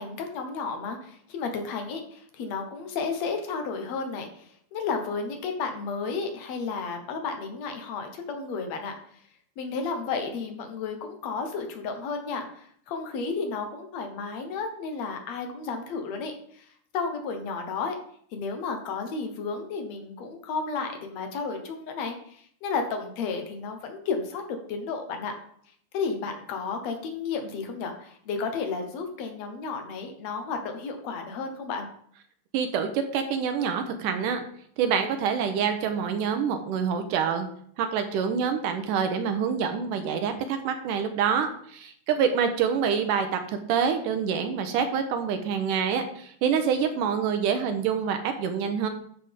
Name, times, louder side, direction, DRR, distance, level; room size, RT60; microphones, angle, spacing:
voice 1, 0.0-9.2 9.6-16.7 16.9-18.0 18.3-25.3 25.9-31.9, left 4 dB, 65° left, 4 dB, 2.1 m, -32 dB
voice 2, 32.5-34.4 34.8-37.5 37.8-43.3 43.7-48.9, right 7 dB, 85° right, 6 dB, 2.3 m, -26 dB
13.0 x 5.6 x 3.6 m, 0.63 s
omnidirectional pair, 3.7 m